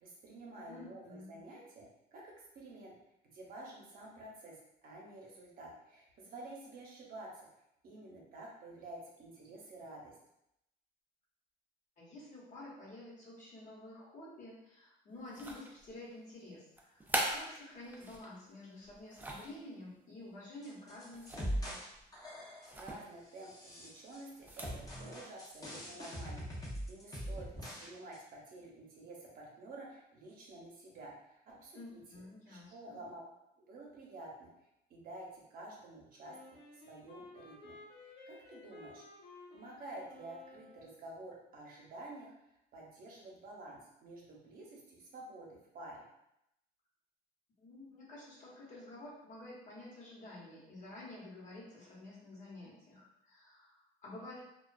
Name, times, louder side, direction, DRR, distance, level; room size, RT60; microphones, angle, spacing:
voice 1, 0.0-2.9 3.3-4.6 4.8-7.5 7.8-10.2 22.5-32.0 32.5-33.3 33.6-34.5 34.9-36.4 36.7-39.1 39.5-46.0, right 2 dB, 60° right, -2 dB, 0.7 m, -50 dB
voice 2, 0.7-1.4 12.0-21.8 31.7-33.0 47.6-54.4, left 2 dB, 45° left, -5 dB, 1.0 m, -50 dB
sound 1, 15.3-15.9 16.8-18.3 18.8-19.6 21.1-21.6 21.9-22.1 22.7-23.0 24.3-24.8, right 1 dB, 10° right, 0.4 m, -40 dB
sound 2, 20.6-21.9 22.1-22.8 23.4-24.2 24.6-27.9 28.1-28.2, equal, 20° left, 0.7 m, -42 dB
Wind instrument woodwind instrument, 36.3-41.0, left 2 dB, 75° left, 0.6 m, -55 dB
2.4 x 2.3 x 2.3 m, 0.83 s
cardioid pair, 110°, 17 cm